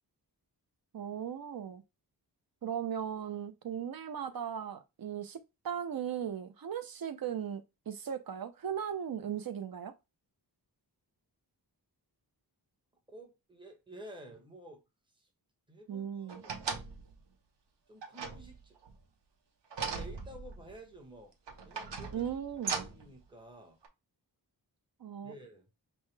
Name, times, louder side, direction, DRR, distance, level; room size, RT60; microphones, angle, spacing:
voice 1, 0.9-1.8 2.6-9.9 15.9-16.4 22.1-22.8 25.0-25.3, right 8 dB, 60° right, 0.6 m, -37 dB
voice 2, 13.1-14.8 15.1-15.3 15.7-16.7 17.9-18.8 19.9-21.3 21.6-22.3 22.7-23.8 25.2-25.7, right 1 dB, 10° right, 1.0 m, -51 dB
sound 1, 16.3-17.2 18.0-19.0 19.7-20.8 21.5-23.1 23.8-23.9, right 5 dB, 90° right, 0.7 m, -39 dB
5.4 x 2.1 x 3.2 m
wide cardioid pair, 125°, 41 cm